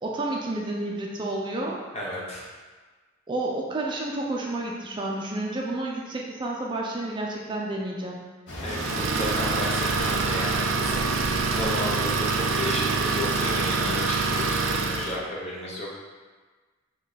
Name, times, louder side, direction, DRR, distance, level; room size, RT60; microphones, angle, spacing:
voice 1, 0.0-1.8 3.3-8.2, right 2 dB, 25° right, -2 dB, 0.4 m, -30 dB
voice 2, 1.9-2.5 8.6-11.1 11.5-16.0, left 1 dB, 35° left, -4 dB, 0.8 m, -33 dB
sound 1, 8.5-14.6, left 1 dB, 65° left, 0.9 m, -37 dB
Idling, 8.7-15.2, right 4 dB, 90° right, 0.4 m, -26 dB
5.1 x 2.3 x 4.0 m, 1.4 s
head